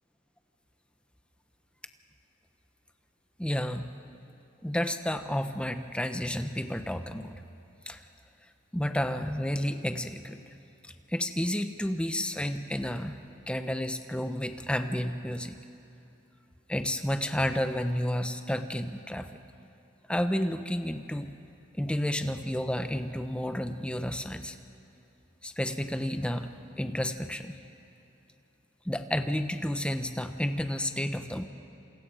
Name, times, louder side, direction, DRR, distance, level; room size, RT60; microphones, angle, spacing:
voice 1, 3.4-3.9 4.6-7.3 7.9-8.0 8.7-10.4 11.1-13.2 13.5-15.6 16.7-19.3 20.1-21.3 21.8-24.6 25.4-27.5 28.8-31.5, equal, 5° left, 8 dB, 1.0 m, -31 dB
28.5 x 27.5 x 4.9 m, 2.9 s
head